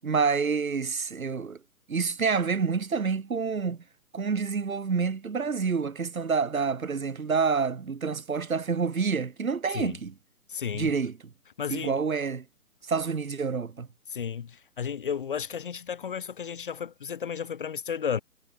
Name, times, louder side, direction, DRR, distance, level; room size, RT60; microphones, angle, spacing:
voice 1, 0.0-1.6 1.9-3.8 4.1-10.1 10.7-11.1 11.7-12.4 12.8-13.9, right 5 dB, 60° right, 7.5 m, -28 dB
voice 2, 10.5-10.9 11.6-12.0 14.1-18.2, left 7 dB, 35° left, 4.2 m, -33 dB
hypercardioid pair, 175°, 46 cm